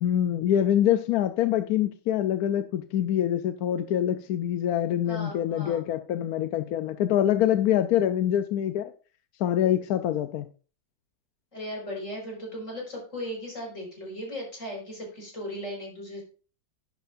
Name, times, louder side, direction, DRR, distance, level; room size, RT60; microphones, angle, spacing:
voice 1, 0.0-8.9 9.4-10.5, left 11 dB, 70° left, 10 dB, 1.0 m, -25 dB
voice 2, 5.0-5.8 11.5-16.2, equal, 45° left, -1 dB, 5.7 m, -37 dB
11.0 x 10.5 x 2.6 m, 0.38 s
omnidirectional pair, 1.9 m